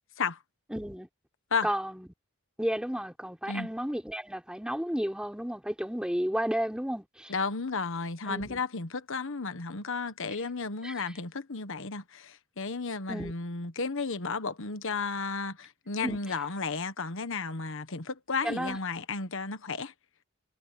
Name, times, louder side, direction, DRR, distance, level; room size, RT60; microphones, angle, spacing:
voice 1, 0.7-1.1 1.6-2.1 2.6-7.3 8.3-8.6 10.8-10.9 13.1-13.3 16.0-16.2 18.4-18.8, equal, 5° right, 5.4 m, -32 dB
voice 2, 7.3-19.9, left 4 dB, 65° left, 1.3 m, -33 dB
head